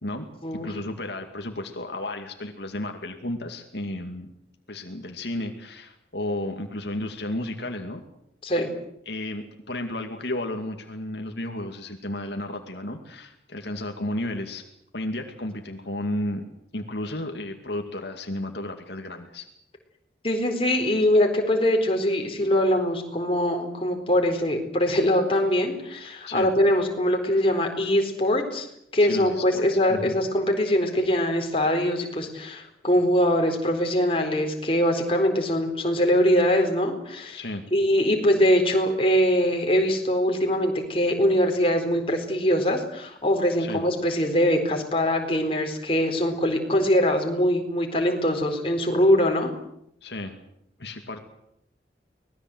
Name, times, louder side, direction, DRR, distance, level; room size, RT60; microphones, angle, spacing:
voice 1, 0.6-4.3 4.7-8.0 9.1-14.6 14.9-16.4 16.7-19.4 26.3-26.5 29.0-29.6 29.9-30.1 37.3-37.6 43.6-43.8 50.0-50.3 50.8-51.2, left 1 dB, 70° left, 4 dB, 2.4 m, -33 dB
voice 2, 20.2-28.7 28.9-37.4 37.7-49.5, equal, 30° left, 3 dB, 4.2 m, -22 dB
25.0 x 19.5 x 7.9 m, 0.76 s
head